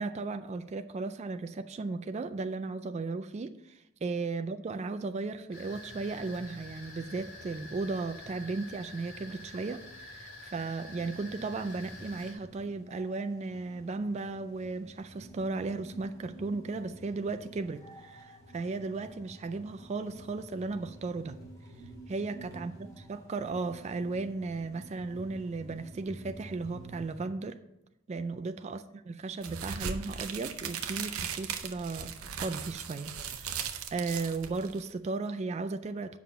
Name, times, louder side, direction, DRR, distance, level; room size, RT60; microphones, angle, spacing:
voice 1, 0.0-21.4 22.1-22.7 23.1-27.6 28.1-36.2, right 3 dB, 30° right, 0.3 m, -35 dB
sound 1, 5.5-12.3, left 2 dB, 45° left, 2.6 m, -47 dB
sound 2, 10.8-27.3, right 1 dB, 15° left, 2.3 m, -51 dB
sound 3, 29.4-34.9, right 7 dB, 90° right, 0.7 m, -38 dB
7.3 x 5.8 x 5.5 m
head